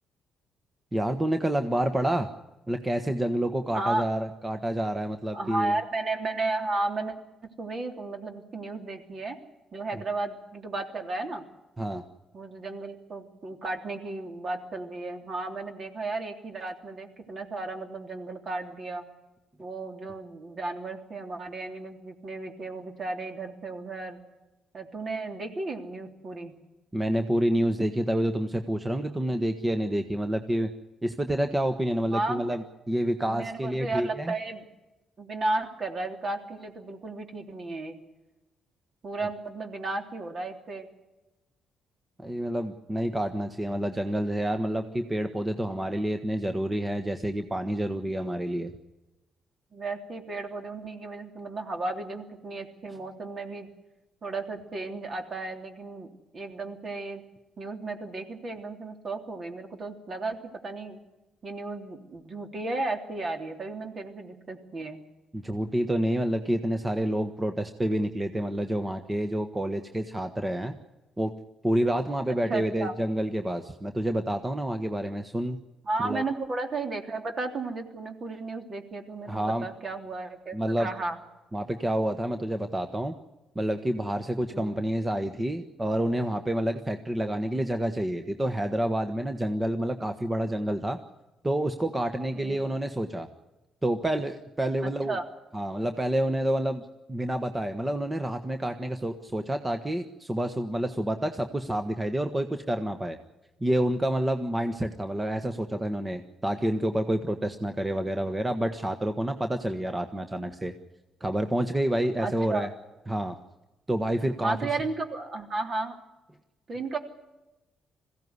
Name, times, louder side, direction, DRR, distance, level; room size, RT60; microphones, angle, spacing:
voice 1, 0.9-2.3 2.7-5.7 11.8-12.0 26.9-30.7 31.0-34.3 42.2-48.7 65.3-70.7 71.2-71.3 71.6-75.6 76.0-76.2 79.3-79.7 80.5-80.9 81.5-83.1 83.5-91.0 91.4-93.3 93.8-95.2 95.5-103.2 103.6-110.7 111.2-112.7 113.1-113.3 113.9-114.6, right 1 dB, 15° right, 7 dB, 1.3 m, -28 dB
voice 2, 3.7-4.1 5.3-7.2 7.6-9.4 9.7-11.4 12.3-19.0 19.6-24.2 24.7-26.5 32.1-32.6 33.3-34.6 35.2-38.0 39.0-40.9 49.7-53.7 54.2-57.2 57.6-61.0 61.4-65.0 72.3-72.9 75.8-81.2 84.5-84.8 92.3-92.6 94.8-95.2 112.2-112.7 114.4-116.0 116.7-117.0, right 2 dB, 45° right, 4 dB, 3.3 m, -34 dB
21.0 x 16.0 x 9.7 m, 1.1 s
cardioid pair, 90°, 0 cm